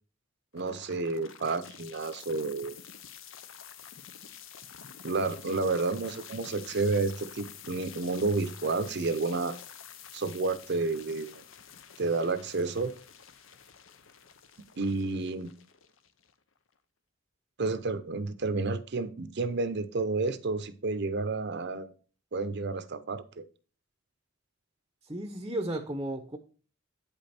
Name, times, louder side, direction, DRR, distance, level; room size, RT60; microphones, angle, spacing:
sound 1, 0.5-16.6, left 8 dB, 70° left, 0.8 m, -49 dB
voice 1, 0.5-2.8 5.0-9.6 10.1-11.4 12.0-12.9 14.8-15.5 17.6-21.9 22.3-23.4, right 3 dB, 55° right, 0.7 m, -30 dB
voice 2, 25.0-26.4, right 1 dB, 20° right, 0.7 m, -34 dB
8.8 x 5.3 x 4.3 m
head